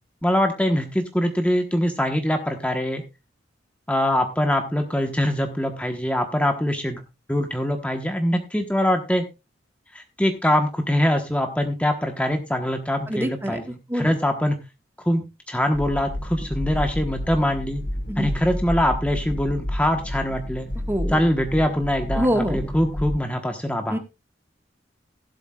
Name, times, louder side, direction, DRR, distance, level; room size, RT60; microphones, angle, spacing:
voice 1, 0.2-3.0 3.9-7.0 7.3-9.2 9.9-14.6 15.0-17.8 18.2-20.7 21.1-24.0, equal, 5° left, 5 dB, 1.1 m, -23 dB
voice 2, 13.1-14.1 18.1-18.3 20.9-21.2 22.1-22.6 23.9-24.0, equal, 10° right, 7 dB, 1.5 m, -25 dB
sound 1, 15.7-23.2, left 1 dB, 65° left, 4.4 m, -30 dB
16.0 x 12.0 x 2.4 m, 0.26 s
head